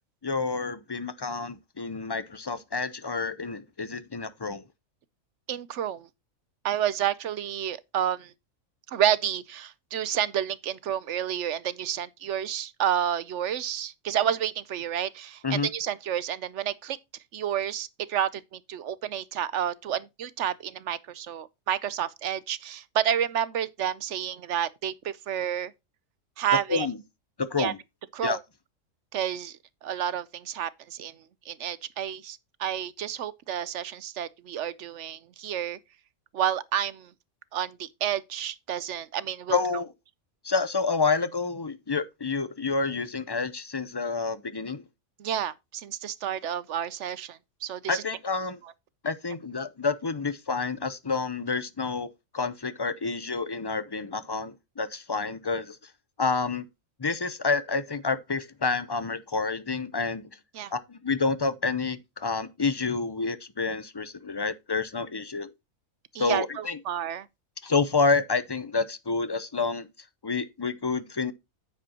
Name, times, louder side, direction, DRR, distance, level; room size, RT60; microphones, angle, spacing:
voice 1, 0.2-4.6 15.4-15.7 26.7-27.0 27.4-27.8 28.2-28.4 39.5-39.9 40.4-44.8 47.9-48.6 49.0-52.1 52.3-55.8 56.2-56.6 57.0-60.3 60.7-65.5 66.2-66.8 67.6-69.9 70.2-71.3, left 4 dB, 30° left, 0.4 m, -28 dB
voice 2, 5.5-6.1 6.6-8.3 8.9-17.0 17.3-25.7 26.4-26.9 27.6-27.7 28.1-28.4 29.1-31.1 31.5-35.8 36.3-37.1 37.5-39.6 45.2-48.0 48.6-48.7 60.5-60.7 66.1-67.3, right 10 dB, 65° right, 0.9 m, -30 dB
9.5 x 7.8 x 2.9 m
omnidirectional pair, 1.4 m